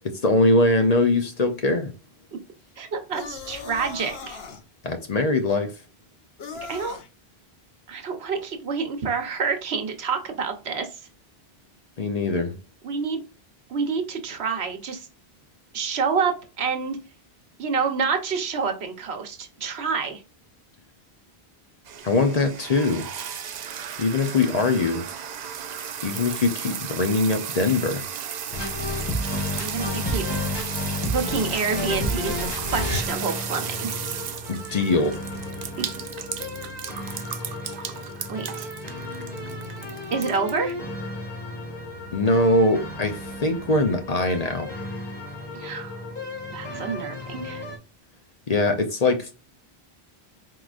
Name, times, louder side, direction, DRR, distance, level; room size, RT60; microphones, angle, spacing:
voice 1, 0.2-1.9 4.8-5.7 12.0-12.6 22.0-23.1 24.0-25.0 26.0-28.0 34.5-35.1 42.1-44.7 48.5-49.3, left 2 dB, 45° left, 0.7 m, -22 dB
voice 2, 2.8-4.4 6.7-7.0 7.9-11.0 12.8-13.2 13.7-15.1 15.7-17.0 17.6-20.2 29.6-30.2 31.1-33.9 38.3-38.7 40.1-40.8 45.6-46.0 46.5-47.6, right 5 dB, 85° right, 1.2 m, -28 dB
sound 1, 3.1-4.6 6.4-7.1, left 5 dB, 70° left, 1.0 m, -38 dB
sound 2, 21.9-40.7, right 8 dB, 55° right, 0.5 m, -35 dB
sound 3, 28.5-47.8, left 1 dB, 25° left, 1.2 m, -32 dB
4.7 x 3.8 x 2.4 m
omnidirectional pair, 1.0 m